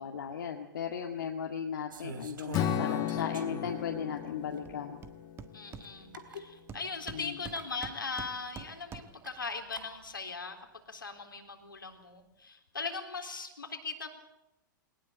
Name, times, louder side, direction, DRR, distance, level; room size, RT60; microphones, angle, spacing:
voice 1, 0.0-5.0 6.3-6.4 7.1-7.4, left 7 dB, 70° left, 3 dB, 2.1 m, -36 dB
sound 1, 1.9-3.9 4.5-4.6 5.8-5.9 6.1-6.5 7.4-7.7 9.2-9.9, right 5 dB, 75° right, 3.2 m, -43 dB
Strum, 2.5-6.7, left 11 dB, 35° left, 2.1 m, -36 dB
Hammer, 4.6-4.7 5.0-6.3 6.7-9.3, right 7 dB, 25° right, 1.6 m, -47 dB
voice 2, 5.5-10.6 10.9-14.1, left 4 dB, 90° left, 4 dB, 3.8 m, -39 dB
21.5 x 19.5 x 8.7 m, 0.88 s
hypercardioid pair, 110°, 11 cm